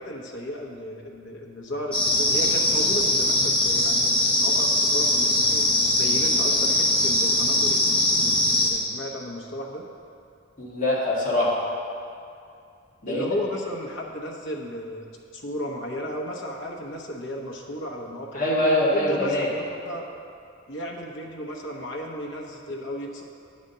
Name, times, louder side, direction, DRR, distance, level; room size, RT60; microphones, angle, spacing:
voice 1, 0.0-4.1 4.4-9.9 13.1-15.1 15.3-18.6 18.9-20.0 20.7-23.2, equal, 65° left, -1 dB, 0.9 m, -34 dB
sound 1, 1.9-8.7, left 1 dB, 5° left, 1.1 m, -21 dB
voice 2, 10.6-11.5 13.0-13.2 18.3-19.5, left 1 dB, 40° left, -6 dB, 1.6 m, -23 dB
8.7 x 4.2 x 6.6 m, 2.5 s
head